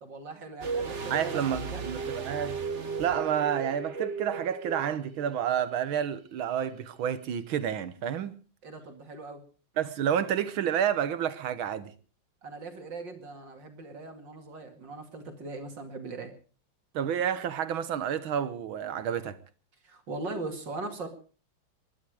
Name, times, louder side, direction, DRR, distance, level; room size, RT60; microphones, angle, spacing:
voice 1, 0.0-1.8 8.6-9.4 12.4-16.3 19.8-21.1, right 3 dB, 60° right, 3.0 m, -40 dB
sound 1, 0.6-5.5 5.7-5.8, right 4 dB, 35° right, 1.6 m, -35 dB
voice 2, 1.1-2.6 3.0-8.4 9.8-11.9 16.9-19.4, right 9 dB, 75° right, 1.9 m, -30 dB
21.5 x 12.5 x 4.9 m
omnidirectional pair, 2.3 m